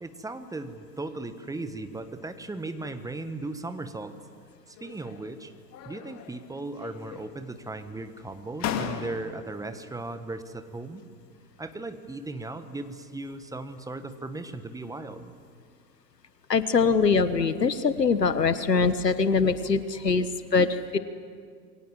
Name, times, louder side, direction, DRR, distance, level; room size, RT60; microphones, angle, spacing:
voice 1, 0.0-4.1 4.7-5.5 5.8-11.0 11.6-15.3, right 2 dB, 5° right, 10 dB, 1.4 m, -37 dB
sound 1, 4.7-5.3 5.7-6.5 6.8-7.5 8.2-8.3 8.6-9.6, left 9 dB, 30° left, 2.2 m, -36 dB
voice 2, 16.5-21.0, left 4 dB, 80° left, 14 dB, 1.3 m, -23 dB
28.0 x 23.0 x 7.5 m, 2.1 s
figure-of-eight pair, 90°, 48 cm